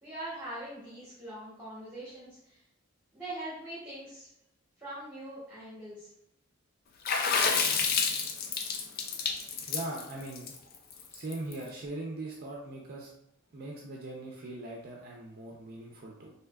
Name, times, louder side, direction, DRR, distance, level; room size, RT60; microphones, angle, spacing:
voice 1, 0.0-2.6 3.1-4.3 4.8-6.1, right 1 dB, 10° right, -11 dB, 1.1 m, -42 dB
Water / Splash splatter, 7.0-11.5, left 5 dB, 45° left, 0.4 m, -29 dB
voice 2, 9.7-10.5 11.1-13.1 13.5-16.3, right 2 dB, 50° right, -1 dB, 0.5 m, -40 dB
3.5 x 2.7 x 2.2 m, 0.80 s
head